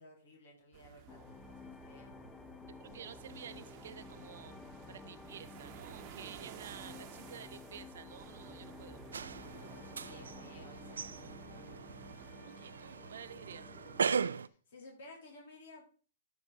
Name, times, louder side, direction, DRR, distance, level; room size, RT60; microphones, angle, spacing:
voice 1, 0.0-2.2 10.0-11.9 14.3-15.8, left 1 dB, 65° left, 0 dB, 3.3 m, -56 dB
sound 1, 0.7-12.3, right 9 dB, 40° right, 1.1 m, -54 dB
sound 2, 1.1-14.4, left 4 dB, 10° left, 0.6 m, -53 dB
voice 2, 2.8-4.6 4.9-9.0 12.2-13.7, right 8 dB, 70° right, 12 dB, 0.8 m, -51 dB
sound 3, 9.1-14.5, right 6 dB, 90° right, 0.4 m, -39 dB
13.0 x 4.9 x 3.9 m, 0.39 s
hypercardioid pair, 135°, 0 cm